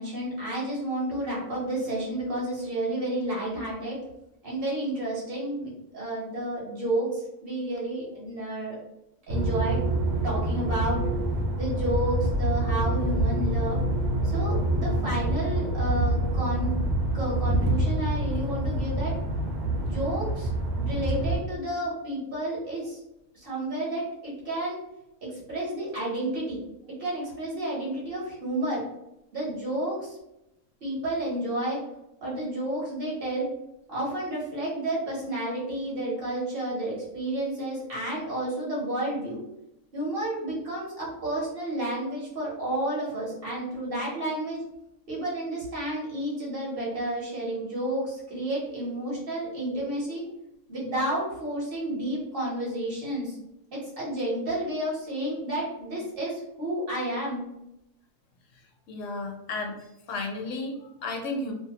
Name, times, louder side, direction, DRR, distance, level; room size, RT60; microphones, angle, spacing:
voice 1, 0.0-4.0 4.4-8.8 9.3-9.8 10.2-11.0 11.6-13.8 14.2-16.7 17.1-19.1 19.8-20.5 20.8-23.0 23.3-24.8 25.3-26.6 27.0-28.8 29.3-30.2 30.8-31.8 32.2-33.5 33.9-39.4 39.9-44.6 45.1-50.2 50.7-53.4 53.7-57.4, right 1 dB, 50° right, -6 dB, 1.1 m, -31 dB
sound 1, 9.3-21.4, right 1 dB, 85° right, 1.0 m, -26 dB
voice 2, 58.9-59.7 60.1-61.5, left 2 dB, 75° left, 2 dB, 0.9 m, -33 dB
2.7 x 2.2 x 2.8 m, 0.85 s
omnidirectional pair, 1.3 m